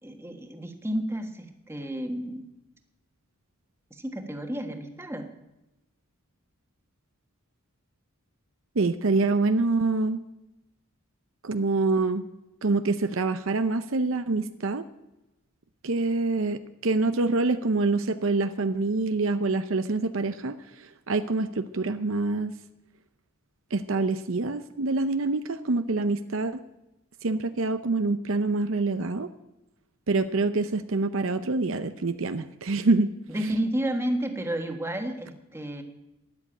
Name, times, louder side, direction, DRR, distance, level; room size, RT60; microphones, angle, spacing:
voice 1, 0.0-2.4 3.9-5.3 33.3-35.8, right 1 dB, 10° right, 4 dB, 1.5 m, -31 dB
voice 2, 8.8-10.2 11.4-12.2 12.6-14.8 15.8-20.5 21.1-22.5 23.7-26.6 27.2-29.3 30.1-33.1, right 3 dB, 65° right, 10 dB, 0.7 m, -26 dB
13.0 x 10.5 x 8.8 m, 0.95 s
head